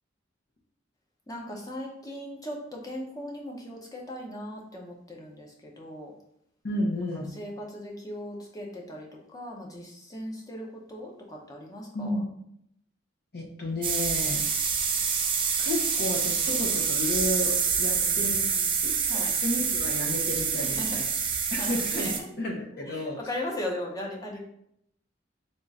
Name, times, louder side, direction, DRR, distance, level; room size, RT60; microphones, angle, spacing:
voice 1, 1.3-6.1 7.4-12.2 17.9-18.7 19.1-19.3 20.5-21.0 21.6-22.3 22.9-24.4, left 1 dB, 20° left, -1 dB, 0.7 m, -38 dB
voice 2, 6.6-7.3 11.9-12.3 13.3-14.5 15.6-21.1 21.5-23.2, left 1 dB, 55° left, -1 dB, 0.9 m, -32 dB
sound 1, 13.8-22.2, right 6 dB, 25° right, 0.4 m, -27 dB
3.6 x 2.4 x 4.0 m, 0.74 s
head